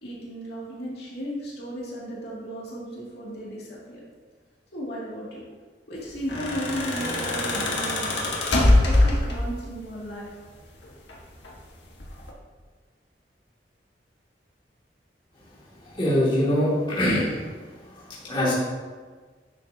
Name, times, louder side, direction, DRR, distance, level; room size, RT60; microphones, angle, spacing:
voice 1, 0.0-4.0 4.7-5.4 5.9-10.3, equal, 65° left, -6 dB, 2.3 m, -35 dB
sound 1, 6.1-9.7 10.8-11.6 12.0-12.3, left 1 dB, 85° left, 1.5 m, -23 dB
voice 2, 15.9-17.4 18.3-18.5, equal, 30° left, -8 dB, 2.3 m, -22 dB
10.5 x 6.8 x 2.8 m, 1.5 s
head